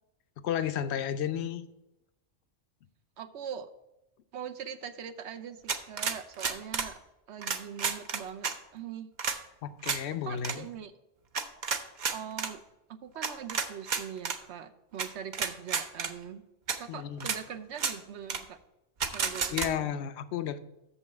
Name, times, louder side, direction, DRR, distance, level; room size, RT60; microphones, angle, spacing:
voice 1, 0.4-1.6 9.6-10.7 16.9-17.3 19.2-20.6, left 9 dB, 70° left, 12 dB, 0.8 m, -33 dB
voice 2, 3.2-3.7 4.3-7.0 7.3-9.1 10.2-10.9 12.1-12.6 12.9-16.4 16.8-18.6 19.1-19.9, right 8 dB, 75° right, 10 dB, 0.9 m, -42 dB
sound 1, 5.7-6.9 7.4-8.5 9.2-9.4 9.8-10.0 10.4-10.6 11.3-12.5 13.2-14.4 15.0-15.1 15.3-16.1 16.7-16.8 17.2-17.4 17.7-17.9 18.3-18.4 19.0-19.7, right 5 dB, 50° right, 0.7 m, -31 dB
6.8 x 5.5 x 7.1 m, 0.90 s
omnidirectional pair, 1.2 m